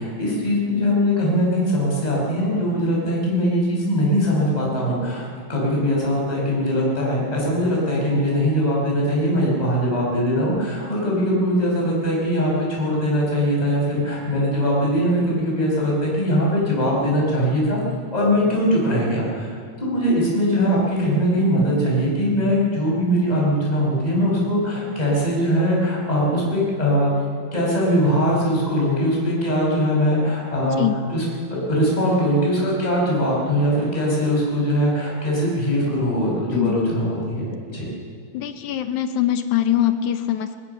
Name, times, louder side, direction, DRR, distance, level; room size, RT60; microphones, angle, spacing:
voice 1, 0.0-17.8 18.1-19.5 19.8-27.2 27.5-31.2 31.5-37.9, equal, 10° left, -4 dB, 5.8 m, -21 dB
voice 2, 38.3-40.6, left 11 dB, 70° left, 9 dB, 2.1 m, -22 dB
20.5 x 20.0 x 6.9 m, 2.2 s
omnidirectional pair, 3.9 m